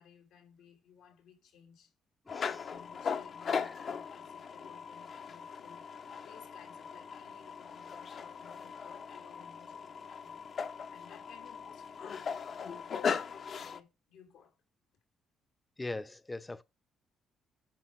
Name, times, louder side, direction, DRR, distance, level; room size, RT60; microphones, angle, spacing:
voice 1, 0.0-1.9 2.5-10.6 10.9-14.6, left 8 dB, 90° left, 2.7 m, -59 dB
sound 1, 2.3-13.8, left 6 dB, 55° left, 0.9 m, -39 dB
voice 2, 15.8-16.6, left 2 dB, 15° left, 0.7 m, -40 dB
10.5 x 4.9 x 4.6 m
cardioid pair, 90°, 0 cm